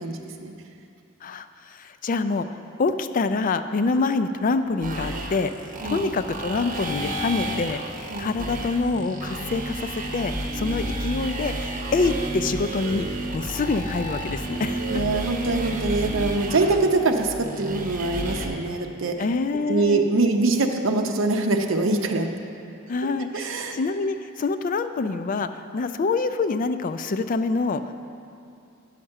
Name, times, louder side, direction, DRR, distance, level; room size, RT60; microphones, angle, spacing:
voice 1, 0.0-0.5 5.8-6.0 8.1-8.3 14.9-19.1 19.7-22.3 23.3-23.8, right 3 dB, 70° right, 4 dB, 0.7 m, -23 dB
voice 2, 1.2-5.5 5.8-7.8 8.2-13.1 13.3-14.8 19.2-20.1 22.9-27.8, left 3 dB, 40° left, 10 dB, 0.4 m, -26 dB
sound 1, 4.8-18.5, right 1 dB, 40° right, 0.9 m, -31 dB
9.9 x 5.8 x 6.4 m, 2.6 s
head